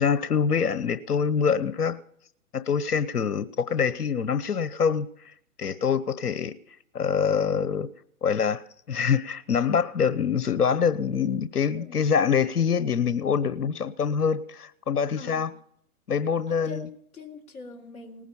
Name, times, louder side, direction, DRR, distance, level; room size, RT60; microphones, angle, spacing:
voice 1, 0.0-2.0 2.5-5.1 5.6-6.5 6.9-7.9 8.2-15.5 16.1-16.9, left 6 dB, 80° left, 1.1 m, -25 dB
voice 2, 11.7-12.1 15.2-15.6 16.5-18.2, left 3 dB, 15° left, 3.1 m, -44 dB
19.0 x 10.5 x 7.1 m
hypercardioid pair, 135°, 45 cm